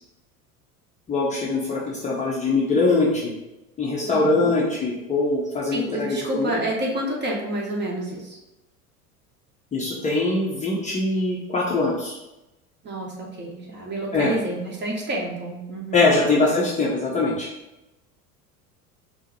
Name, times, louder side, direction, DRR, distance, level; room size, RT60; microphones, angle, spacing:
voice 1, 1.1-3.3 3.8-6.6 9.7-12.1 14.1-14.3 15.9-17.5, left 3 dB, 15° left, -5 dB, 0.7 m, -22 dB
voice 2, 4.0-4.5 5.7-8.4 12.8-16.0, right 1 dB, 25° right, -1 dB, 1.0 m, -29 dB
4.5 x 2.1 x 4.4 m, 0.97 s
figure-of-eight pair, 75°, 46 cm